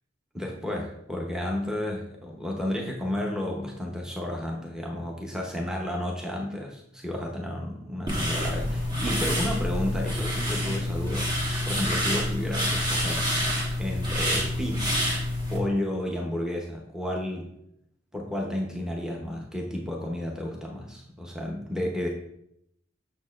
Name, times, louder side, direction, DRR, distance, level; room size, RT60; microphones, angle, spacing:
voice 1, 0.3-13.3 13.8-15.0 15.5-17.5 18.1-22.1, left 1 dB, 5° right, 0 dB, 0.7 m, -32 dB
sound 1, 8.1-15.6, equal, 25° right, 1.2 m, -27 dB
6.4 x 6.3 x 2.4 m, 0.75 s
head